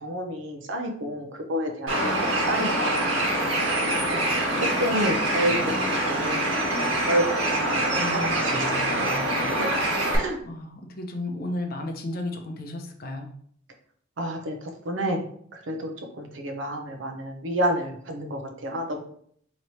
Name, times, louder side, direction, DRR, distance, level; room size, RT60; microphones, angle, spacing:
voice 1, 0.0-2.1 2.5-3.1 4.1-4.2 4.6-6.5 6.8-7.9 8.2-8.6 8.9-9.7 10.2-10.4 14.2-14.6 14.9-15.2 15.5-19.0, equal, 70° right, 4 dB, 0.7 m, -29 dB
Bird, 1.9-10.2, right 1 dB, 90° right, 1.4 m, -25 dB
voice 2, 8.0-8.5 10.4-13.3, left 1 dB, 50° left, 4 dB, 0.6 m, -33 dB
3.1 x 2.9 x 4.1 m, 0.63 s
head